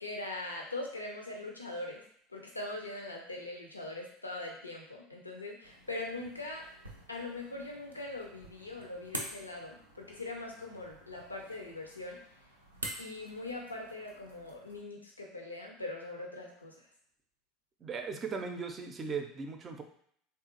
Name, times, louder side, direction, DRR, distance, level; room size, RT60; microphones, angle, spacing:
voice 1, 0.0-2.0 2.3-6.6 7.1-12.2 13.0-16.7, left 2 dB, 85° left, 1 dB, 0.5 m, -41 dB
sound 1, 5.6-14.8, right 1 dB, 85° right, 0.4 m, -47 dB
voice 2, 17.8-19.8, right 5 dB, 30° right, 5 dB, 0.5 m, -38 dB
3.4 x 2.4 x 2.8 m, 0.66 s
figure-of-eight pair, 70°, 0 cm